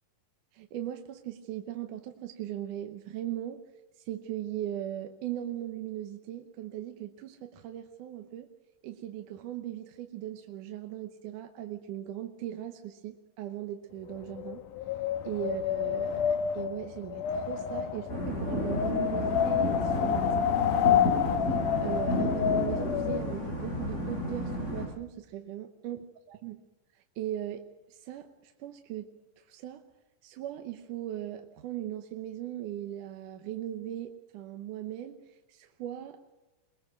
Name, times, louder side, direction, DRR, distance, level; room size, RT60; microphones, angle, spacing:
voice 1, 0.5-3.7 4.0-8.5 8.8-14.7 15.2-21.5 21.8-26.0 26.3-26.6 27.0-29.8 30.2-36.3, right 12 dB, 80° right, 6 dB, 2.5 m, -39 dB
Wind, 14.1-23.3, left 9 dB, 90° left, 2.5 m, -29 dB
sound 1, 18.1-24.9, equal, 20° left, 7.0 m, -32 dB
22.0 x 21.0 x 6.3 m, 1.1 s
omnidirectional pair, 3.7 m